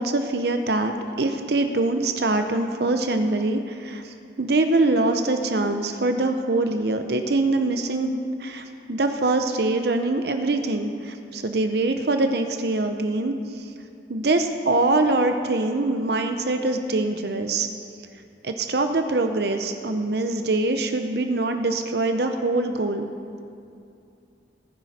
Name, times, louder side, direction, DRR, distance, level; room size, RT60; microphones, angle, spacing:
voice 1, 0.0-13.7 14.1-17.7 18.4-23.1, right 2 dB, 65° right, 6 dB, 0.7 m, -24 dB
19.0 x 10.0 x 4.2 m, 2.5 s
head